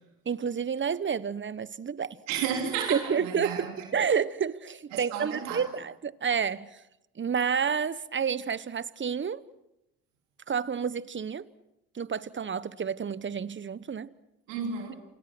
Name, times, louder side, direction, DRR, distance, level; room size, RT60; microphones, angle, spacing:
voice 1, 0.3-2.2 2.9-3.7 3.9-6.7 7.2-9.4 10.5-11.5 11.9-14.1, right 7 dB, 30° right, 1.1 m, -29 dB
voice 2, 2.3-3.9 4.9-5.7 14.5-15.0, right 7 dB, 85° right, 3.5 m, -32 dB
28.5 x 27.0 x 6.2 m
hypercardioid pair, 60°, 36 cm